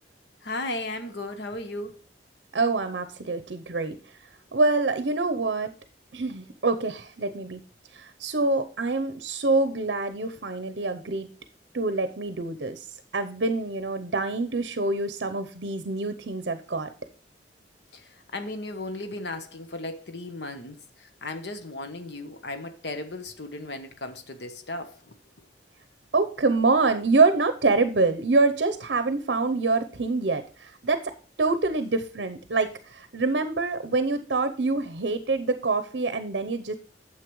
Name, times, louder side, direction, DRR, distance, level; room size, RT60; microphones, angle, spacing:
voice 1, 0.4-2.0 17.9-25.5, left 2 dB, 65° left, 1.0 m, -36 dB
voice 2, 2.5-4.0 4.5-5.7 6.1-7.6 7.9-11.3 11.7-12.9 13.1-16.9 26.1-31.1 31.4-36.7, right 3 dB, 65° right, 0.7 m, -25 dB
9.6 x 7.4 x 3.1 m
head